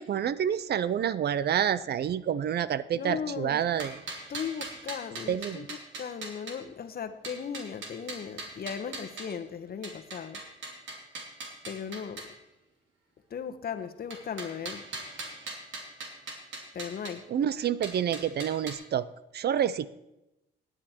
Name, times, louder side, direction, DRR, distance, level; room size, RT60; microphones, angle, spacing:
voice 1, 0.0-4.0 5.3-5.7 17.3-19.1 19.3-19.9, right 9 dB, 55° right, 17 dB, 0.6 m, -28 dB
voice 2, 2.9-3.6 4.3-10.4 11.6-12.4 13.3-14.8 16.7-17.2, left 7 dB, 50° left, 8 dB, 1.2 m, -37 dB
sound 1, 3.6-6.6 7.2-9.4 9.8-12.3 14.1-17.1 17.8-18.7, right 3 dB, 70° right, 2.8 m, -40 dB
17.0 x 9.9 x 4.4 m, 0.92 s
cardioid pair, 90°, 20 cm